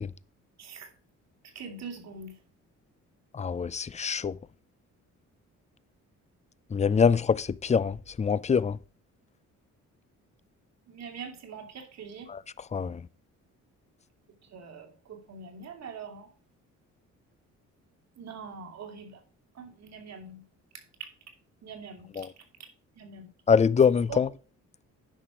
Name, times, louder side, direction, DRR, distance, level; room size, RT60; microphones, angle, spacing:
voice 1, 0.6-0.9 1.5-2.4 10.9-12.3 14.4-16.3 18.2-19.2 19.5-20.4 20.7-21.1 21.6-22.3 22.6-22.7 23.0-23.3 24.1-24.2, right 5 dB, 60° right, 2.6 m, -43 dB
voice 2, 3.3-4.3 6.7-8.8 12.3-12.4 12.7-13.0 22.2-22.3 23.5-24.3, left 6 dB, 25° left, 0.5 m, -24 dB
9.8 x 6.3 x 5.0 m
cardioid pair, 90°, 30 cm